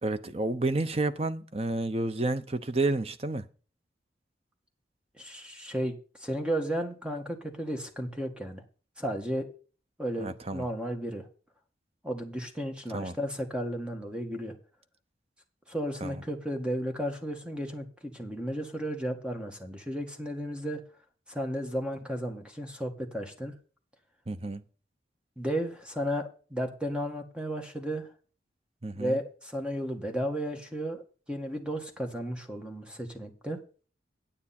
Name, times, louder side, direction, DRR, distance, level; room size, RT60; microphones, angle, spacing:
voice 1, 0.0-3.5 10.2-10.6 12.9-13.2 16.0-16.2 24.3-24.6 28.8-29.2, right 2 dB, 35° right, 0.8 m, -30 dB
voice 2, 5.2-8.6 9.0-9.5 10.0-11.3 12.0-14.5 15.7-20.8 21.3-23.5 25.4-28.1 28.9-31.0 31.3-33.6, equal, 5° right, 1.8 m, -34 dB
9.8 x 8.8 x 4.3 m
head